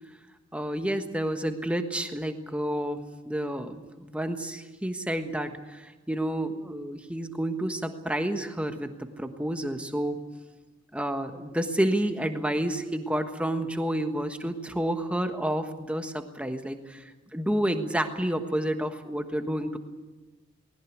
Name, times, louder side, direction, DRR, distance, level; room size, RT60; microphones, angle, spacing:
voice 1, 0.5-10.2 10.9-19.8, right 1 dB, 5° right, 6 dB, 1.3 m, -30 dB
20.5 x 17.5 x 9.3 m, 1.2 s
head